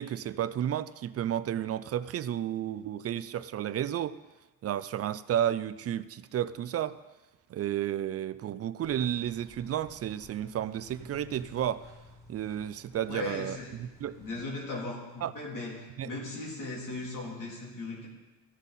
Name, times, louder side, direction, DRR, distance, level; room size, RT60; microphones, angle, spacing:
voice 1, 0.0-4.2 4.6-7.0 7.5-11.9 12.3-14.2 15.2-15.3 16.0-16.1, right 10 dB, 45° right, 0.4 m, -32 dB
sound 1, 8.8-14.4, left 2 dB, 10° right, 3.5 m, -54 dB
voice 2, 13.1-13.8 14.2-18.1, left 2 dB, 60° left, 3.4 m, -38 dB
14.5 x 5.6 x 4.1 m
cardioid pair, 105°, 35 cm